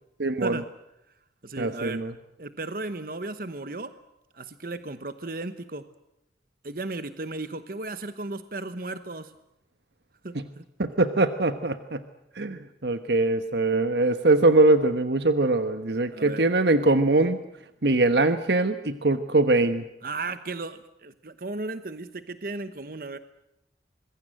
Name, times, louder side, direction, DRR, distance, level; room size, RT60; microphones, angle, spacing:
voice 1, 0.2-0.6 1.6-2.1 10.3-10.4 10.8-12.0 12.4-17.4 17.8-19.8, right 2 dB, 75° right, 10 dB, 1.2 m, -22 dB
voice 2, 1.4-2.0 2.4-3.9 4.3-5.8 6.6-9.3 10.2-10.6 16.1-16.4 20.0-23.2, right 2 dB, 55° right, 11 dB, 1.1 m, -35 dB
26.0 x 21.5 x 7.7 m, 0.86 s
head